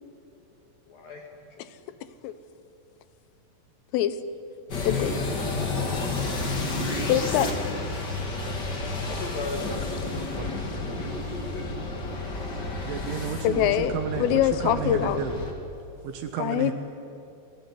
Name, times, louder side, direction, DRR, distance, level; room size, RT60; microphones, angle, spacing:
voice 1, 0.9-1.2 9.1-11.6 12.1-12.3, left 3 dB, 55° left, 1 dB, 3.1 m, -38 dB
sound 1, 4.7-15.5, left 3 dB, 35° left, 1.8 m, -31 dB
voice 2, 4.9-5.2 7.1-7.5 13.4-15.2 16.4-16.7, left 11 dB, 85° left, 13 dB, 3.6 m, -24 dB
voice 3, 12.9-15.3 16.0-16.7, right 8 dB, 75° right, 5 dB, 3.6 m, -32 dB
29.0 x 17.5 x 9.7 m, 2.6 s
omnidirectional pair, 5.8 m